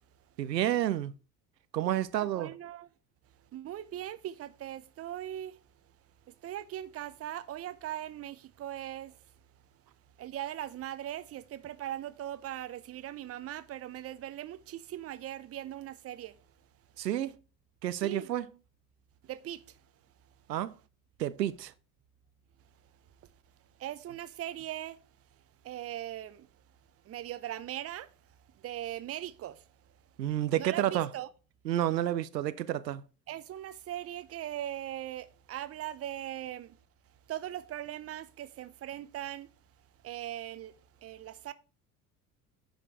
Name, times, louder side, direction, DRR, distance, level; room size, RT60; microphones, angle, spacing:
voice 1, 0.4-1.1 1.7-2.5 17.0-17.3 17.8-18.5 20.5-20.7 21.2-21.7 30.2-31.1 31.7-33.0, right 12 dB, 80° right, 0.6 m, -30 dB
voice 2, 2.2-2.9 3.5-5.6 6.3-9.2 10.2-16.4 18.0-18.3 19.2-19.6 23.8-25.0 25.6-26.5 27.1-28.1 28.6-29.6 30.6-31.3 33.3-36.8 37.3-39.5 40.0-40.7 41.0-41.5, right 12 dB, 30° right, 0.7 m, -40 dB
10.0 x 5.0 x 4.8 m
figure-of-eight pair, 65°, 49 cm